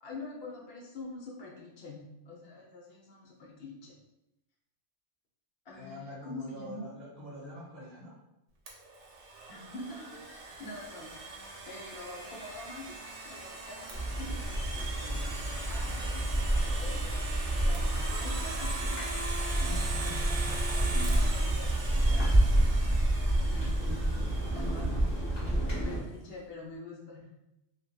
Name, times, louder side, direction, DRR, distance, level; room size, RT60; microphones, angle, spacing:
voice 1, 0.0-4.0 5.6-6.9 9.5-10.2 10.6-11.1 11.7-15.3 15.6-19.1 19.5-19.7 20.7-22.5 22.9-24.9 25.7-27.3, left 2 dB, 65° left, -2 dB, 0.8 m, -45 dB
voice 2, 5.7-8.1 19.7-21.4, left 1 dB, 55° right, -7 dB, 0.8 m, -46 dB
Domestic sounds home sounds, 8.7-25.4, right 3 dB, 80° right, 0.9 m, -41 dB
sound 1, 13.9-26.0, right 1 dB, 10° left, 1.3 m, -29 dB
2.7 x 2.1 x 2.3 m, 0.90 s
omnidirectional pair, 1.2 m